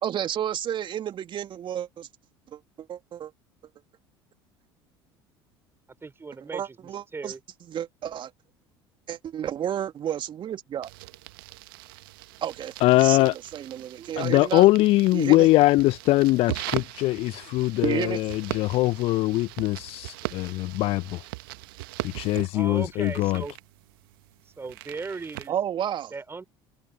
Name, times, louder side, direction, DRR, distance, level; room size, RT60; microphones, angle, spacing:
voice 1, 0.0-2.1 2.5-3.3 6.5-7.3 7.7-8.3 9.1-10.9 12.4-12.7 13.0-14.7 15.1-15.5 17.8-18.3 25.5-26.1, right 10 dB, 40° right, 2.5 m, -31 dB
voice 2, 6.0-7.4 22.5-23.5 24.6-25.5 26.1-26.4, right 4 dB, 20° right, 3.9 m, -37 dB
sound 1, 10.8-25.5, right 22 dB, 60° right, 1.5 m, -40 dB
voice 3, 12.8-13.3 14.2-21.2 22.1-23.4, left 18 dB, 50° left, 1.0 m, -22 dB
figure-of-eight pair, 65°, 13 cm